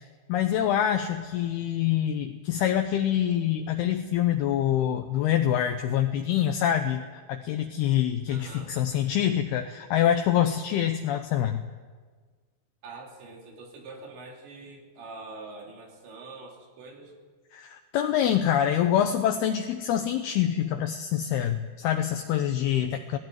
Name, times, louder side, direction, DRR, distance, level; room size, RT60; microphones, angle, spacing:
voice 1, 0.3-7.0 7.3-11.6 17.5-23.2, left 10 dB, 75° left, 5 dB, 2.6 m, -25 dB
voice 2, 8.3-8.7 12.8-17.1 22.6-22.9, right 3 dB, 90° right, 0 dB, 5.5 m, -44 dB
17.5 x 17.5 x 9.2 m, 1.5 s
omnidirectional pair, 5.0 m